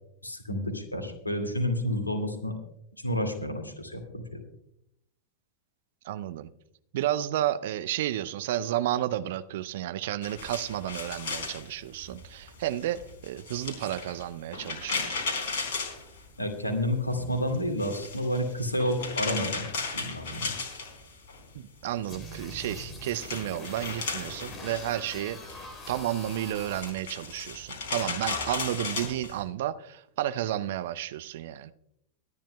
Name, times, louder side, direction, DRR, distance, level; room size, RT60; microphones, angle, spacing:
voice 1, 0.2-2.5 3.0-4.4 16.4-19.7 19.9-20.5, equal, 80° left, 2.0 m, -30 dB
voice 2, 6.0-6.5 6.9-15.2 21.5-31.7, right 12 dB, 55° right, 0.6 m, -32 dB
sound 1, 10.2-16.7 17.0-21.4 21.7-29.4, left 4 dB, 55° left, 4.2 m, -36 dB
sound 2, 22.1-26.9, left 2 dB, 20° left, 2.9 m, -43 dB
23.5 x 10.0 x 2.2 m
figure-of-eight pair, 90°, 0 cm